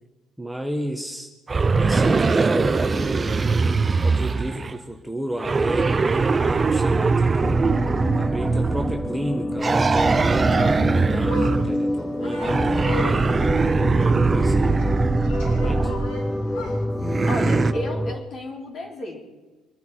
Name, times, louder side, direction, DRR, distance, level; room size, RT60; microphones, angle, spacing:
voice 1, 0.4-1.3 1.8-3.4 4.0-7.6 8.1-13.3 14.0-14.8 15.5-15.9, right 1 dB, 5° right, 3 dB, 1.2 m, -32 dB
sound 1, 1.5-4.8 5.4-9.1 9.6-11.8 12.4-16.1 17.0-17.7, right 4 dB, 25° right, 0.6 m, -21 dB
sound 2, 7.4-18.2, left 1 dB, 15° left, 0.8 m, -27 dB
sound 3, 10.3-16.9, left 1 dB, 90° left, 6.0 m, -37 dB
voice 2, 17.3-19.2, left 1 dB, 45° left, 0 dB, 4.0 m, -32 dB
25.0 x 10.5 x 4.5 m, 1.2 s
cardioid pair, 120°, 0 cm